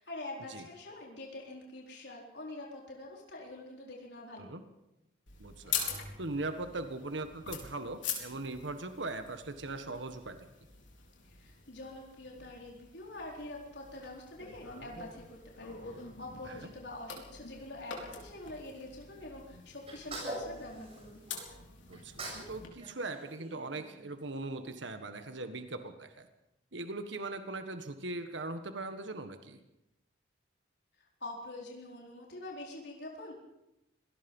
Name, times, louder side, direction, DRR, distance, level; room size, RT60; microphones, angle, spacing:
voice 1, 0.0-4.5 11.2-21.2 31.2-33.4, left 2 dB, 65° left, -1 dB, 4.2 m, -45 dB
sound 1, 5.3-22.7, left 6 dB, 90° left, 4.3 m, -44 dB
voice 2, 5.4-5.9 6.2-10.5 16.4-16.7 21.9-26.3 26.7-29.6, right 2 dB, 80° right, 8 dB, 1.6 m, -40 dB
Sneeze, 19.9-21.5 21.9-22.5 22.8-24.2, right 1 dB, 30° right, 7.7 m, -43 dB
25.5 x 18.5 x 5.5 m, 0.88 s
head